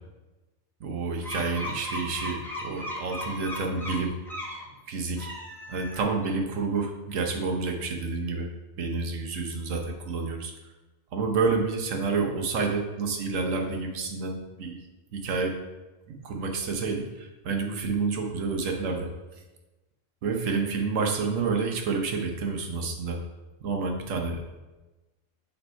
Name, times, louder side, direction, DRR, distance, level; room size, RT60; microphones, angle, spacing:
voice 1, 0.8-4.1 4.9-5.3 5.7-8.5 8.8-10.5 11.1-14.8 15.1-15.6 16.1-19.1 20.2-23.2 23.6-24.4, right 4 dB, 75° right, 3 dB, 1.2 m, -29 dB
sound 1, 1.2-4.6 5.1-6.3, left 1 dB, ahead, 0.8 m, -36 dB
6.9 x 3.3 x 4.4 m, 1.1 s
omnidirectional pair, 1.3 m